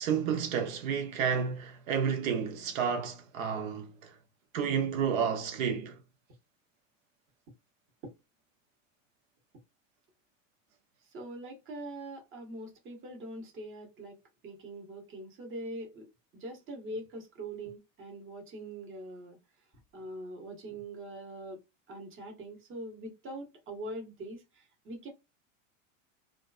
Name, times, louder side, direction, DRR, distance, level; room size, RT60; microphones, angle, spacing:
voice 1, 0.0-4.2 4.5-6.0, right 7 dB, 90° right, 0.7 m, -31 dB
voice 2, 11.0-14.2 14.4-19.4 19.9-21.6 21.9-25.1, right 1 dB, 30° right, 1.0 m, -43 dB
2.4 x 2.2 x 2.3 m
supercardioid pair, 135°, 39 cm